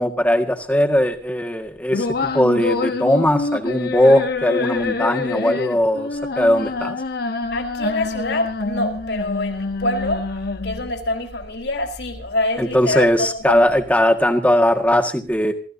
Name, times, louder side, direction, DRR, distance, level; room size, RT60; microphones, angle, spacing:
voice 1, 0.0-6.1 6.4-7.0 12.6-15.5, equal, 10° left, 4 dB, 1.7 m, -19 dB
sound 1, 1.9-10.9, left 3 dB, 60° left, 1.1 m, -26 dB
voice 2, 7.5-10.2 10.6-13.6, left 1 dB, 75° left, 4 dB, 4.2 m, -25 dB
27.5 x 15.0 x 2.7 m, 0.37 s
head